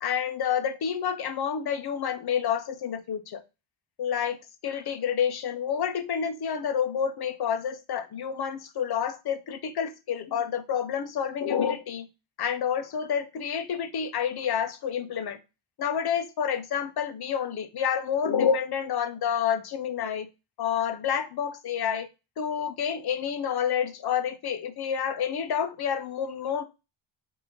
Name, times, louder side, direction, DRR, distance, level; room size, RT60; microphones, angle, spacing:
voice 1, 0.0-3.4 4.0-4.4 4.6-12.1 12.4-15.4 15.8-20.3 20.6-22.1 22.4-26.6, left 8 dB, 50° left, 10 dB, 0.8 m, -29 dB
4.3 x 2.8 x 3.7 m, 0.27 s
cardioid pair, 110°, 50 cm